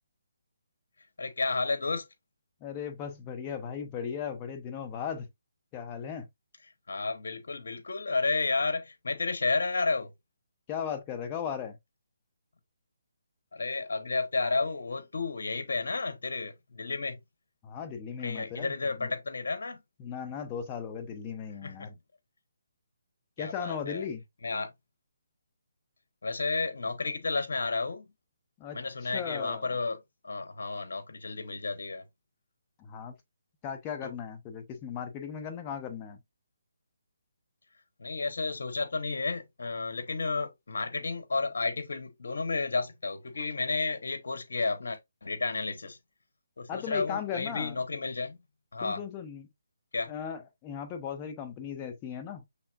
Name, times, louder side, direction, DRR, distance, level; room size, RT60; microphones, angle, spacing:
voice 1, 1.2-2.1 6.9-10.1 13.5-17.2 18.2-19.8 21.6-21.9 23.4-24.1 24.4-24.7 26.2-28.0 28.7-30.0 30.2-32.0 34.0-34.1 38.0-46.0 46.6-48.4 48.7-49.0 49.9-50.1, left 3 dB, 70° left, 1.0 m, -32 dB
voice 2, 2.6-5.3 5.7-6.3 10.7-11.8 17.6-19.1 20.0-21.9 23.4-24.2 28.6-29.8 32.8-33.1 33.6-36.2 46.7-47.8 48.8-49.5 50.1-52.4, left 7 dB, 20° left, 0.8 m, -37 dB
5.7 x 3.4 x 2.4 m
hypercardioid pair, 155°, 0 cm